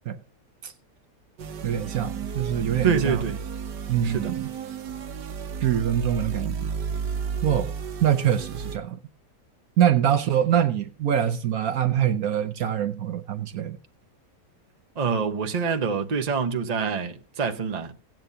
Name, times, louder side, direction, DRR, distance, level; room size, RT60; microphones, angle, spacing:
sound 1, 1.4-8.8, right 6 dB, 85° right, 1.6 m, -33 dB
voice 1, 1.6-3.2 3.9-4.5 5.6-6.5 7.4-7.7 8.0-9.0 9.8-13.8, right 10 dB, 65° right, 1.1 m, -24 dB
voice 2, 2.8-3.4 4.0-4.3 15.0-17.9, right 6 dB, 30° right, 0.9 m, -26 dB
17.0 x 9.1 x 2.7 m
omnidirectional pair, 1.8 m